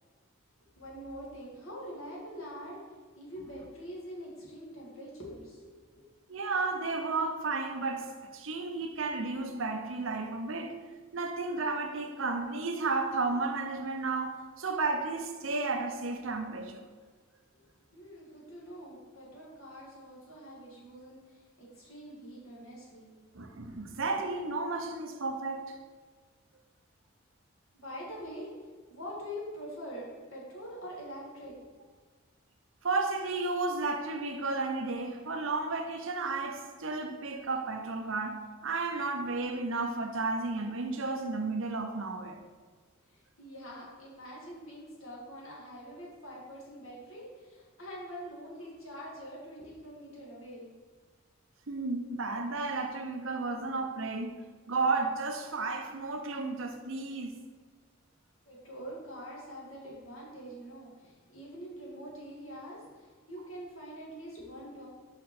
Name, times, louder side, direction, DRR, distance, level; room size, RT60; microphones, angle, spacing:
voice 1, 0.8-2.8 3.2-5.7 17.5-17.7 17.9-23.1 27.7-28.5 28.9-31.8 43.1-50.7 58.5-64.9, equal, 85° left, 2.1 m, -45 dB
voice 2, 6.3-10.8 11.1-16.9 23.3-25.8 32.8-42.4 51.7-54.4 54.7-57.3, right 3 dB, 75° right, 0.8 m, -33 dB
5.9 x 5.3 x 4.3 m
head